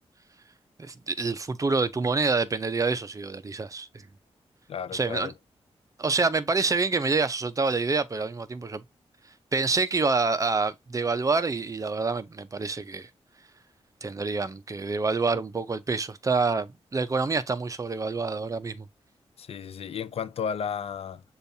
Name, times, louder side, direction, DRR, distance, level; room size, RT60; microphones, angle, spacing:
voice 1, 0.8-3.9 4.9-5.3 6.0-8.8 9.5-13.1 14.0-18.9, right 4 dB, 30° right, 0.5 m, -27 dB
voice 2, 4.7-5.3 19.4-21.2, left 7 dB, 60° left, 0.4 m, -33 dB
6.7 x 2.4 x 2.7 m
wide cardioid pair, 95°, 11 cm